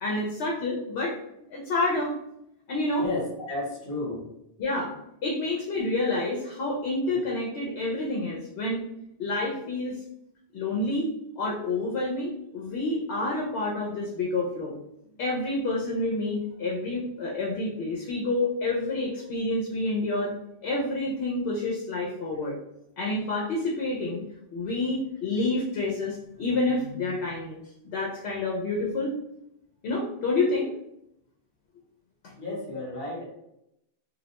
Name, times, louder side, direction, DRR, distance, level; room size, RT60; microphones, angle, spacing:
voice 1, 0.0-1.2 1.5-2.2 2.7-3.0 4.6-4.9 5.2-8.8 9.2-10.0 10.5-11.1 11.4-14.7 15.2-20.3 20.6-22.6 23.0-24.2 24.5-27.6 27.8-29.1 29.8-30.7, left 2 dB, 75° left, -2 dB, 0.8 m, -28 dB
voice 2, 3.0-4.3 32.4-33.2, left 2 dB, 50° left, -4 dB, 1.0 m, -32 dB
2.3 x 2.1 x 2.8 m, 0.80 s
omnidirectional pair, 1.1 m